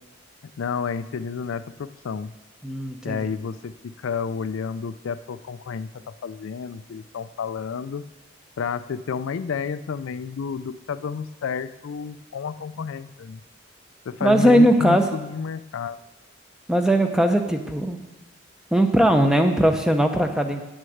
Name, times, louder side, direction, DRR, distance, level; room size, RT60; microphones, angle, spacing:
voice 1, 0.6-2.3 3.0-8.1 8.6-13.4 14.1-16.0, left 6 dB, 80° left, 14 dB, 0.4 m, -30 dB
voice 2, 2.6-3.3 14.2-15.1 16.7-18.0 18.7-20.6, equal, 5° right, 5 dB, 0.7 m, -19 dB
8.9 x 6.4 x 7.8 m, 1.0 s
head